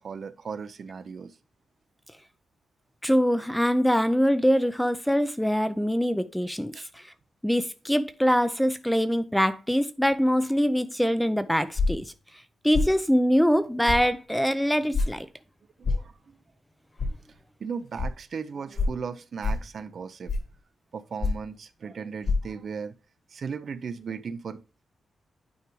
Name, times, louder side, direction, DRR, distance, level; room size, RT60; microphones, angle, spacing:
voice 1, 0.0-1.3 6.7-6.9 15.8-16.1 17.6-20.3 20.9-22.9 23.3-24.6, right 6 dB, 45° right, 0.5 m, -36 dB
voice 2, 3.0-7.0 7.4-12.1 12.6-15.3, equal, ahead, 0.5 m, -24 dB
sound 1, 11.8-12.1 12.7-13.0 13.9-14.0 14.9-15.1 15.8-16.1 17.0-17.1 18.0-18.1 18.8-19.0 19.4-19.7 20.3-20.5 21.2-21.5 22.2-22.4, left 3 dB, 40° left, 1.7 m, -25 dB
9.4 x 4.9 x 3.0 m
wide cardioid pair, 165°, 0 cm